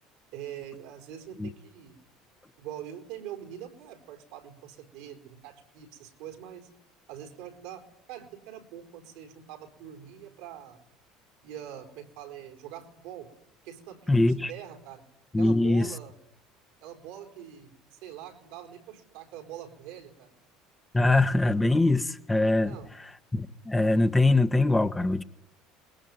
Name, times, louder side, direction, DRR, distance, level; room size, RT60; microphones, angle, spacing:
voice 1, 0.3-2.0 2.6-6.7 7.1-10.8 11.4-13.3 13.6-15.1 15.4-16.1 16.8-20.4 22.6-22.9, right 10 dB, 70° right, 4.2 m, -44 dB
voice 2, 14.1-14.5 15.3-15.9 20.9-22.7 23.3-25.2, left 2 dB, 15° left, 1.6 m, -23 dB
29.5 x 21.0 x 9.6 m
hypercardioid pair, 75°, 0 cm